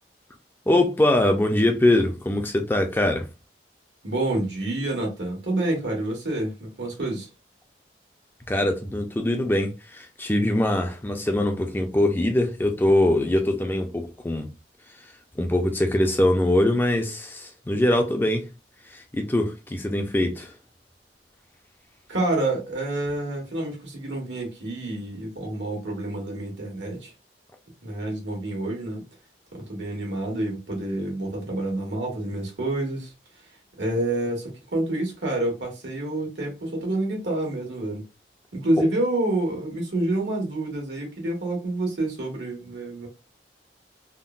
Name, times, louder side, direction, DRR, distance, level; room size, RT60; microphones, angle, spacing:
voice 1, 0.7-3.3 8.5-14.5 15.4-18.5 18.9-20.5, left 1 dB, 10° left, 0.4 m, -22 dB
voice 2, 4.0-7.3 22.1-27.1 27.8-29.0 29.5-33.1 33.8-38.0 38.5-43.1, right 1 dB, 85° right, 1.4 m, -28 dB
3.6 x 2.0 x 2.3 m
head